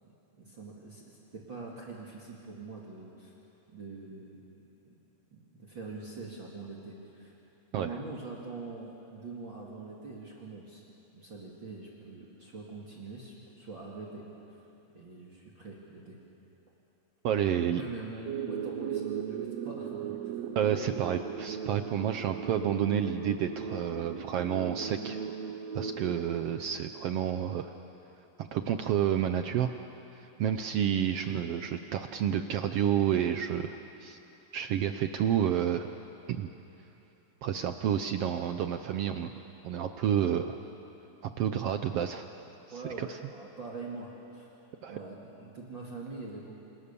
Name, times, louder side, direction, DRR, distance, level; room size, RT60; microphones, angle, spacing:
voice 1, 0.0-3.3 3.7-4.4 4.8-5.0 5.3-7.3 7.7-10.8 11.1-14.6 14.9-16.2 17.8-20.3 42.7-44.5 44.9-46.6, right 3 dB, 40° right, -4 dB, 3.0 m, -44 dB
voice 2, 17.2-17.8 20.6-25.2 25.7-27.7 28.4-29.7 30.2-34.2 34.5-35.9 36.3-36.5 37.4-39.3 39.6-40.6 41.4-42.3 43.0-43.2 44.8-44.9, right 9 dB, 80° right, 8 dB, 1.3 m, -30 dB
sound 1, 18.3-27.3, right 7 dB, 65° right, 2.1 m, -38 dB
28.5 x 28.0 x 7.0 m, 2.9 s
omnidirectional pair, 3.7 m